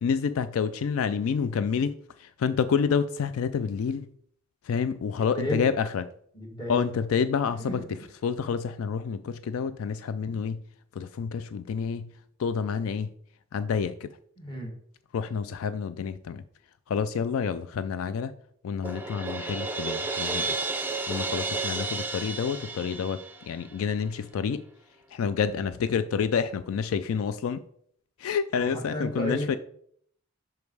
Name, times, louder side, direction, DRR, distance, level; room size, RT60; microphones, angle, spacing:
voice 1, 0.0-1.9 2.2-4.1 4.7-6.1 6.7-7.8 8.2-10.6 11.0-12.1 12.4-13.1 13.5-14.1 15.1-16.4 16.9-18.3 18.6-20.5 21.1-23.2 23.4-24.6 25.1-27.6 28.2-29.6, left 6 dB, 85° left, 0.3 m, -28 dB
voice 2, 5.2-5.6 6.3-6.8 7.6-7.8 14.4-14.7 28.5-29.6, equal, 20° left, 1.8 m, -33 dB
Crash cymbal, 18.8-23.8, right 3 dB, 10° right, 0.5 m, -32 dB
5.8 x 5.2 x 4.6 m
head